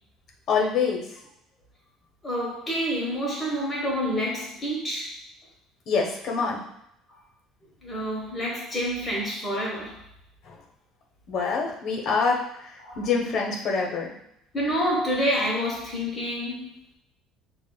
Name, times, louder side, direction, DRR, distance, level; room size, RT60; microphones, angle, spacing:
voice 1, 0.5-1.0 5.9-6.6 10.5-10.6 11.3-12.4 13.0-14.1, left 5 dB, 50° left, 0 dB, 0.9 m, -25 dB
voice 2, 2.2-5.1 7.8-10.0 12.8-13.0 14.5-16.8, equal, 20° left, -4 dB, 1.1 m, -28 dB
6.6 x 2.4 x 2.3 m, 0.77 s
cardioid pair, 130°, 0 cm